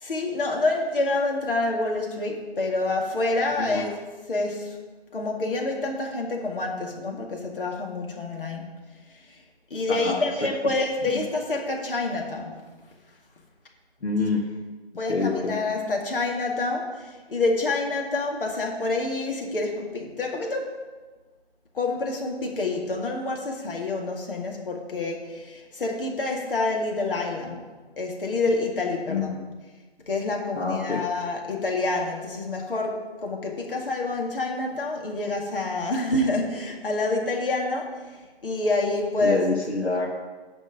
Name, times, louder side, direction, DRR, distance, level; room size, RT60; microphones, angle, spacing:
voice 1, 0.0-4.0 4.3-4.8 5.1-8.7 9.7-12.6 15.0-20.7 21.7-27.6 28.0-29.3 30.1-39.5, left 2 dB, 55° left, 0 dB, 2.1 m, -27 dB
voice 2, 9.9-10.2 14.0-14.5 15.1-15.5 29.1-29.4 30.6-31.1 39.2-40.1, left 4 dB, 80° left, 0 dB, 1.3 m, -26 dB
9.5 x 5.2 x 7.8 m, 1.3 s
figure-of-eight pair, 150°, 32 cm